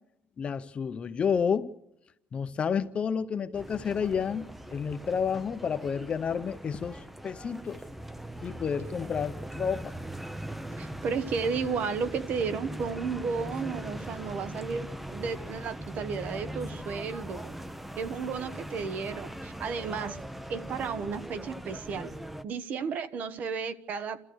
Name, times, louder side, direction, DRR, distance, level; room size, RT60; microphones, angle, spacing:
voice 1, 0.4-1.7 2.3-4.5 4.7-7.0 7.2-7.8 8.4-9.9, left 6 dB, 30° left, 0.9 m, -30 dB
sound 1, 3.5-22.4, right 1 dB, 5° right, 0.7 m, -40 dB
voice 2, 10.7-17.6 17.9-20.2 20.5-22.1 22.4-24.2, right 5 dB, 45° right, 1.2 m, -33 dB
29.5 x 14.0 x 6.4 m
cardioid pair, 155°, 4 cm